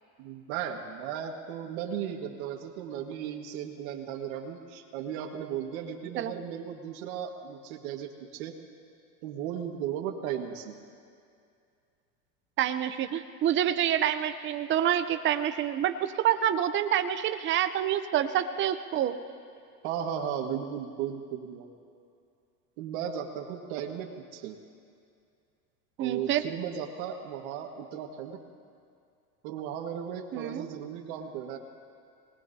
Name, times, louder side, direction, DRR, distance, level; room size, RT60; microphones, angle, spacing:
voice 1, 0.2-8.5 9.2-10.8 19.8-21.7 22.8-24.6 26.0-28.4 29.4-31.6, right 9 dB, 60° right, 1 dB, 1.8 m, -36 dB
voice 2, 12.6-19.2 26.0-26.4 30.3-30.7, right 10 dB, 25° right, 9 dB, 0.7 m, -27 dB
26.0 x 19.5 x 2.8 m, 2.4 s
supercardioid pair, 115°, 47 cm